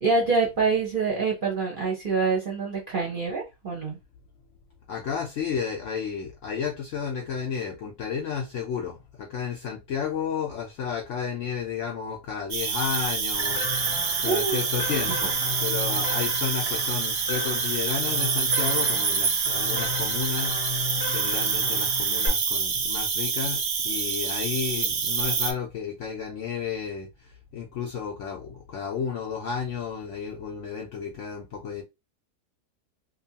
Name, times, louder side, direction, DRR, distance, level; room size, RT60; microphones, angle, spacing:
voice 1, 0.0-4.0 14.2-14.6 14.8-15.0, right 4 dB, 45° right, 0.7 m, -26 dB
voice 2, 4.9-13.9 14.2-20.8 21.1-31.8, left 7 dB, 70° left, 0.7 m, -32 dB
Cricket, 12.5-25.5, right 5 dB, 85° right, 0.5 m, -27 dB
sound 1, 13.3-22.3, left 2 dB, 20° left, 0.6 m, -35 dB
2.7 x 2.3 x 2.7 m
omnidirectional pair, 1.7 m